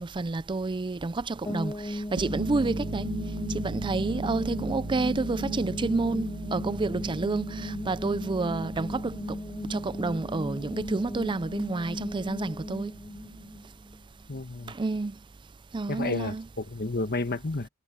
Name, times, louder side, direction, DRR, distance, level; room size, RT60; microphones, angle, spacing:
voice 1, 0.0-3.1 3.5-9.4 9.7-12.9 14.7-15.1 15.7-16.5, right 3 dB, 20° right, 0.4 m, -29 dB
sound 1, 1.4-14.3, left 1 dB, 20° left, 1.8 m, -37 dB
sound 2, 2.2-13.6, right 1 dB, 85° right, 1.5 m, -38 dB
voice 2, 14.3-14.7 15.9-17.7, left 2 dB, 45° left, 1.5 m, -31 dB
head